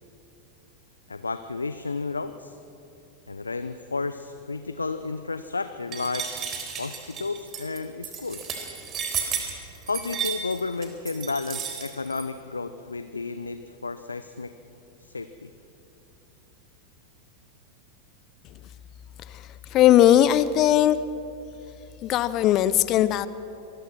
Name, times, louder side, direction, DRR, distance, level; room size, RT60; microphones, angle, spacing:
voice 1, 1.1-2.6 3.3-6.3 6.8-8.6 9.9-14.5 15.0-15.5, left 3 dB, 80° left, 11 dB, 0.7 m, -32 dB
sound 1, 5.9-12.2, right 7 dB, 30° right, 3.8 m, -33 dB
voice 2, 19.7-21.0 22.0-23.3, left 12 dB, 35° left, 16 dB, 0.7 m, -19 dB
26.5 x 20.5 x 6.1 m, 2.9 s
figure-of-eight pair, 90°, 0 cm